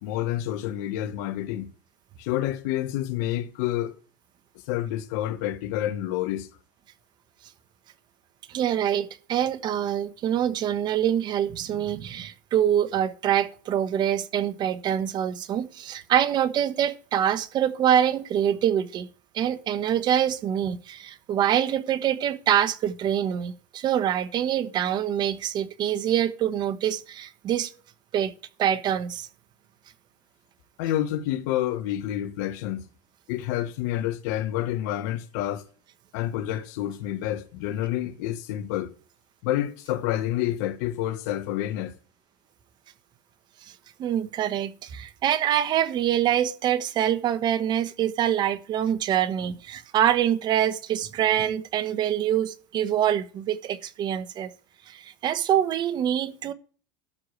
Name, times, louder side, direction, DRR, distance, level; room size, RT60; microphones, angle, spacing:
voice 1, 0.0-1.7 2.2-4.0 4.7-6.5 30.8-32.8 33.3-35.6 36.1-38.9 39.4-41.9, left 12 dB, 75° left, 1.4 m, -28 dB
voice 2, 8.5-19.1 19.3-27.7 28.1-28.3 28.6-29.3 44.0-54.5 54.9-56.5, right 10 dB, 50° right, 1.2 m, -25 dB
12.5 x 4.9 x 8.1 m
supercardioid pair, 90°, 10 cm